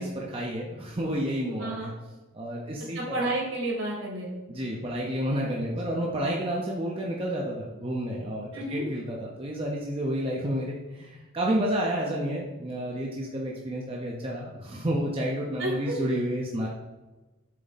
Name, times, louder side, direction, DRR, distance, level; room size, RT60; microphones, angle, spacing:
voice 1, 0.0-1.9 2.3-3.3 4.5-16.7, equal, 25° right, -3 dB, 0.7 m, -30 dB
voice 2, 2.9-4.3 5.9-6.0 8.5-8.8 15.6-16.0, right 1 dB, 65° right, -1 dB, 1.9 m, -31 dB
7.5 x 4.1 x 4.0 m, 1.1 s
head